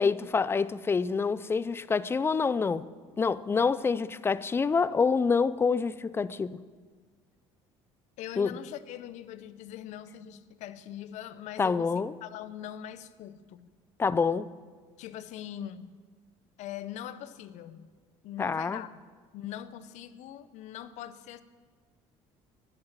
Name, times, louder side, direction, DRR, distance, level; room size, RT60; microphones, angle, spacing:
voice 1, 0.0-2.9 3.2-6.6 8.4-8.5 11.6-12.1 14.0-14.5 18.4-18.8, left 5 dB, 20° left, 0.4 m, -27 dB
voice 2, 8.2-13.7 15.0-16.0 16.6-17.9 18.2-18.9 19.3-21.4, left 11 dB, 70° left, 0.7 m, -42 dB
11.5 x 7.9 x 7.3 m
cardioid pair, 105°, 13 cm